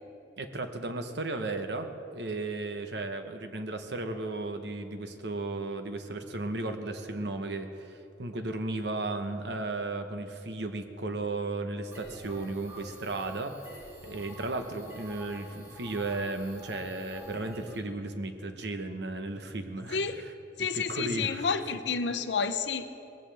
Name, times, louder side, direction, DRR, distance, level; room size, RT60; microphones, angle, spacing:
voice 1, 0.4-13.5 14.0-20.3 20.7-21.5, right 2 dB, 70° right, 7 dB, 1.0 m, -35 dB
sound 1, 11.9-17.8, right 1 dB, 15° right, 2.2 m, -48 dB
voice 2, 19.9-20.2 20.6-22.9, left 5 dB, 80° left, 11 dB, 0.7 m, -30 dB
19.5 x 15.0 x 3.4 m, 2.8 s
head